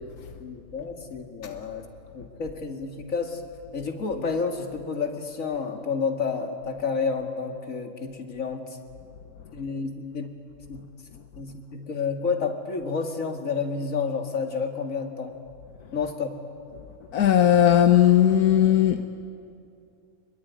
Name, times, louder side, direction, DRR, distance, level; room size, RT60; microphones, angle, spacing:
voice 1, 0.4-1.8 2.1-3.4 3.7-8.7 9.5-10.4 10.7-10.9 11.4-15.3 15.9-16.4, left 5 dB, 60° left, 4 dB, 2.5 m, -30 dB
voice 2, 17.1-19.1, left 10 dB, 85° left, 7 dB, 1.5 m, -18 dB
26.0 x 22.5 x 9.5 m, 2.5 s
omnidirectional pair, 1.5 m